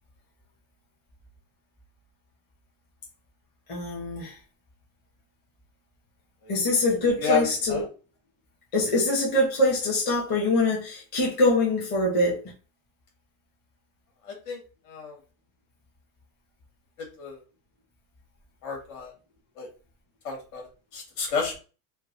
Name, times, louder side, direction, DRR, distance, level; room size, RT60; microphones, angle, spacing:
voice 1, 3.7-4.3 6.5-7.8 8.7-12.5, left 2 dB, 20° left, 0.9 m, -24 dB
voice 2, 7.2-7.9 14.2-15.2 17.0-17.4 18.6-19.1 19.6-19.7 20.2-21.6, left 6 dB, 70° left, 2.0 m, -31 dB
3.9 x 2.1 x 4.0 m
cardioid pair, 175°, 46 cm